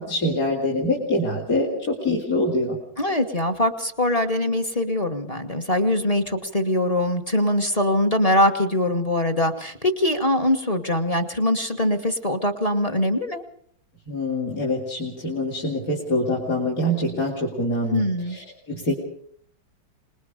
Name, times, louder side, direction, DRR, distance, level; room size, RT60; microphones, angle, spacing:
voice 1, 0.0-2.8 14.1-18.9, left 1 dB, 45° left, 0 dB, 3.5 m, -25 dB
voice 2, 3.0-13.4 17.9-18.4, left 1 dB, 20° left, 8 dB, 1.3 m, -22 dB
26.5 x 20.5 x 5.1 m, 0.63 s
omnidirectional pair, 2.2 m